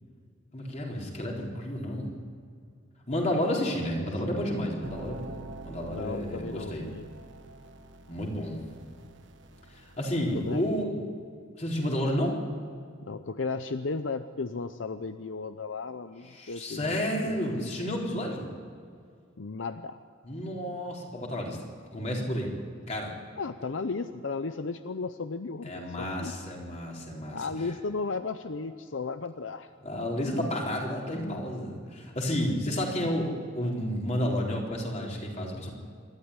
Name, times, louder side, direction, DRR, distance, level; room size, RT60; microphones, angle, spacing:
voice 1, 0.5-2.1 3.1-5.3 5.6-6.8 8.1-8.6 9.8-11.1 11.6-12.4 16.3-18.5 20.2-21.6 21.9-22.5 22.8-23.1 25.6-27.4 29.8-33.3 33.5-35.7, equal, 35° left, -1 dB, 4.1 m, -31 dB
sound 1, 4.8-10.8, right 2 dB, 70° right, 1.4 m, -47 dB
voice 2, 5.8-7.1 10.3-10.9 13.0-17.4 19.4-20.0 23.4-26.3 27.3-29.7, left 4 dB, 80° left, 10 dB, 0.7 m, -35 dB
26.5 x 12.5 x 9.8 m, 2.3 s
head